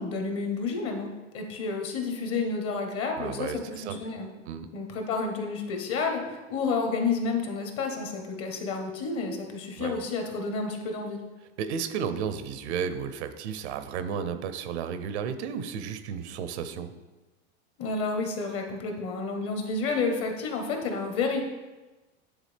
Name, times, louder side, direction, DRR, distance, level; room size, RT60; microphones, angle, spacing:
voice 1, 0.0-4.3 4.7-11.2 17.8-21.4, left 4 dB, 40° left, 4 dB, 1.3 m, -30 dB
voice 2, 3.2-4.0 4.5-4.7 9.8-9.9 11.6-16.9, right 7 dB, 70° right, 10 dB, 0.7 m, -33 dB
9.5 x 3.7 x 3.4 m, 1.1 s
hypercardioid pair, 110°, 34 cm